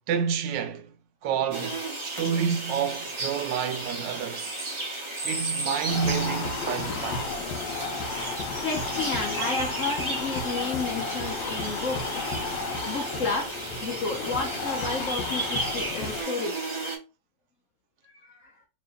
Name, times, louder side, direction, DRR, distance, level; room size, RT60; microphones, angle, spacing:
voice 1, 0.1-0.9 1.2-4.6 5.2-7.3, right 7 dB, 80° right, 1.2 m, -29 dB
sound 1, 1.5-17.0, right 2 dB, 50° right, 0.3 m, -34 dB
sound 2, 5.9-16.2, left 4 dB, 80° left, 1.3 m, -33 dB
voice 2, 8.3-12.4 12.9-16.7 18.1-18.5, left 4 dB, 60° left, 0.9 m, -32 dB
3.0 x 2.9 x 3.4 m
omnidirectional pair, 2.0 m